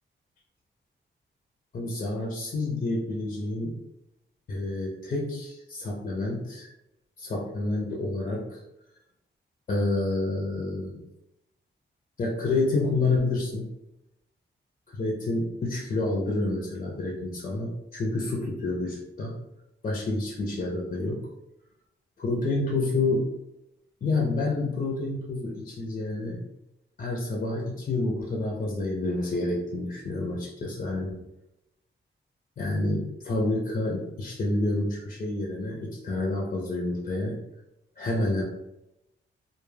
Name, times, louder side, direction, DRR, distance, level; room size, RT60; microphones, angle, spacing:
voice 1, 1.7-3.8 4.5-6.7 7.2-8.6 9.7-11.0 12.2-13.7 14.9-19.3 19.8-21.3 22.2-23.3 24.0-26.4 27.0-31.2 32.6-37.4 38.0-38.4, left 2 dB, 40° left, -2 dB, 0.4 m, -28 dB
2.1 x 2.0 x 3.2 m, 0.89 s
wide cardioid pair, 135°, 20 cm